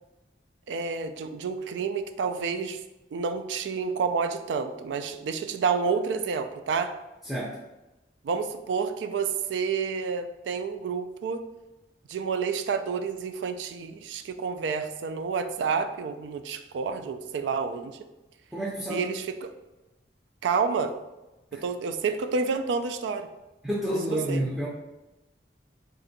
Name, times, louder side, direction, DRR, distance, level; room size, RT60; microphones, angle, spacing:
voice 1, 0.7-2.8 3.1-6.9 8.2-11.4 12.1-18.0 18.9-19.5 20.4-20.9 21.5-23.3 23.9-24.0 24.3-24.4, right 5 dB, 90° right, 9 dB, 0.3 m, -29 dB
voice 2, 7.2-7.6 18.5-19.1 21.5-21.6 23.6-24.7, right 1 dB, 5° right, -6 dB, 0.5 m, -29 dB
2.6 x 2.5 x 3.9 m, 1.0 s
head